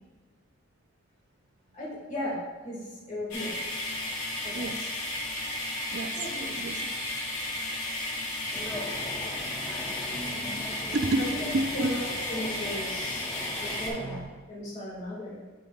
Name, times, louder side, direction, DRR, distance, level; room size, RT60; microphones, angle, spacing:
voice 1, 1.7-3.6 4.4-4.9 6.1-6.7 11.2-11.4 11.7-15.4, left 1 dB, 35° left, -5 dB, 1.8 m, -37 dB
sound 1, 3.3-13.9, left 1 dB, 90° left, 1.6 m, -34 dB
voice 2, 4.5-4.9 5.9-6.1 6.5-6.8 9.4-9.7 10.1-12.0 14.0-14.3, right 2 dB, 50° right, 9 dB, 0.4 m, -31 dB
sound 2, 8.5-14.2, equal, 5° left, 0.7 m, -40 dB
8.6 x 7.7 x 2.3 m, 1.4 s
head